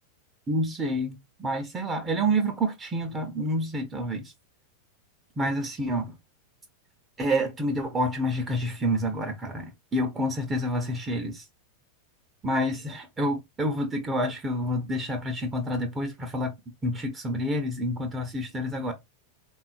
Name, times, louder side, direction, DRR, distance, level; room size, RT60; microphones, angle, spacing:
voice 1, 0.5-4.3 5.4-6.1 7.2-11.4 12.4-16.5 16.8-18.9, equal, 20° right, 0.5 m, -28 dB
3.5 x 2.2 x 2.4 m
figure-of-eight pair, 90°, 0 cm